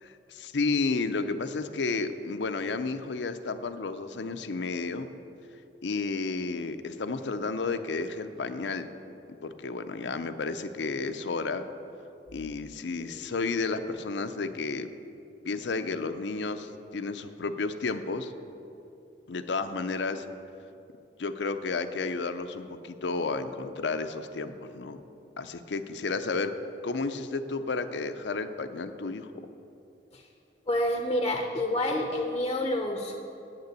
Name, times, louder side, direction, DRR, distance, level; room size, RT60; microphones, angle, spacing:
voice 1, 0.0-5.1 5.8-8.9 9.3-11.6 12.3-14.9 15.4-18.3 19.3-20.3 21.2-25.0 25.4-26.5 26.8-29.3, left 4 dB, 80° left, 10 dB, 0.6 m, -32 dB
voice 2, 30.7-33.2, left 1 dB, 25° left, 3 dB, 0.7 m, -28 dB
8.7 x 6.7 x 8.2 m, 2.8 s
head